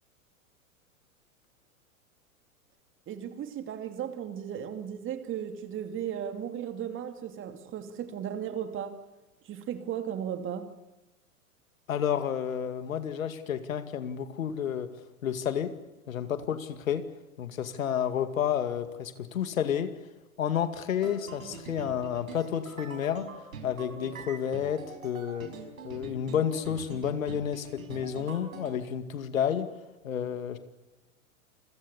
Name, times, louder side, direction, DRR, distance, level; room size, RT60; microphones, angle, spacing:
voice 1, 3.1-9.0 9.4-10.7, right 9 dB, 30° right, 7 dB, 2.7 m, -36 dB
voice 2, 11.9-14.9 15.2-15.7 16.1-17.1 17.4-19.9 20.4-23.3 23.6-25.5 25.8-29.7 30.0-30.6, left 9 dB, 70° left, 9 dB, 2.3 m, -30 dB
sound 1, 20.9-28.7, right 4 dB, 75° right, 5.0 m, -44 dB
28.5 x 22.5 x 7.1 m, 1.0 s
figure-of-eight pair, 100°, 42 cm